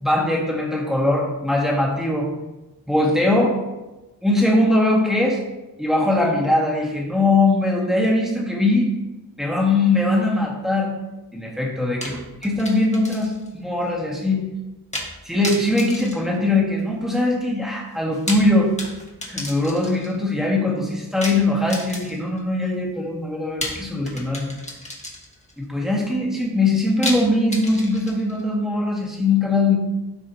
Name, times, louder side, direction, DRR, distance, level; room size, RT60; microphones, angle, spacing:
voice 1, 0.0-2.3 2.9-3.6 4.2-5.4 5.8-8.9 9.4-10.9 11.3-12.1 12.4-14.5 15.2-18.7 19.3-24.5 25.6-29.8, left 2 dB, ahead, -3 dB, 1.9 m, -21 dB
sound 1, 12.0-13.5 13.8-13.9 14.9-15.2 15.4-17.0 18.0-20.2 21.2-22.4 23.6-25.5 27.0-28.4, left 1 dB, 20° left, 1.5 m, -33 dB
12.5 x 4.9 x 2.8 m, 1.0 s
wide cardioid pair, 95°, 38 cm